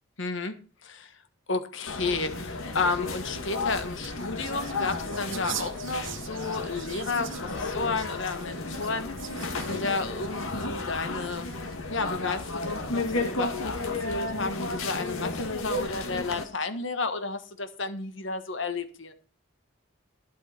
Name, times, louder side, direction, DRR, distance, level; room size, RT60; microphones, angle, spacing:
voice 1, 0.2-1.1 1.5-7.3 7.6-9.1 9.6-11.5 11.9-19.1, left 3 dB, 60° left, 1.3 m, -32 dB
sound 1, 1.9-16.4, left 3 dB, 80° left, 2.0 m, -33 dB
sound 2, 3.5-11.8 12.4-13.0, right 11 dB, 60° right, 1.0 m, -44 dB
11.5 x 11.5 x 4.4 m
head